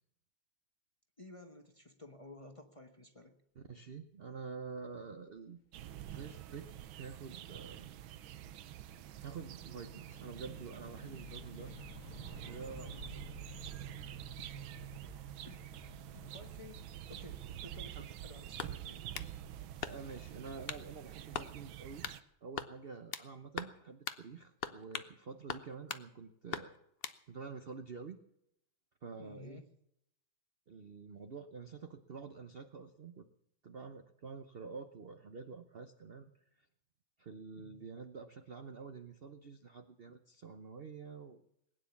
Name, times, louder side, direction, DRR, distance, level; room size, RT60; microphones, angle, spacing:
voice 1, 1.2-3.4 12.8-13.2 14.4-15.0 15.4-19.1 29.2-29.7 37.6-37.8, left 2 dB, 20° left, 4 dB, 1.0 m, -54 dB
voice 2, 3.6-5.6 6.1-6.7 6.9-7.9 9.2-11.7 12.4-13.3 19.9-22.0 22.4-26.8 27.3-28.2 29.0-29.6 30.7-33.3 33.6-36.3 37.2-41.4, right 5 dB, 55° right, 7 dB, 0.6 m, -48 dB
sound 1, 5.5-21.1, left 4 dB, 45° left, 1.4 m, -57 dB
sound 2, 5.7-22.2, right 12 dB, 85° right, 1.6 m, -47 dB
sound 3, 18.6-19.3 19.8-20.2 20.7-20.9 21.3-21.5 22.0-22.2 22.6-23.3 23.6-23.8 24.1-24.2 24.6-25.1 25.5-26.1 26.5-27.2, left 7 dB, 75° left, 0.5 m, -41 dB
20.5 x 9.6 x 7.1 m, 0.78 s
omnidirectional pair, 2.2 m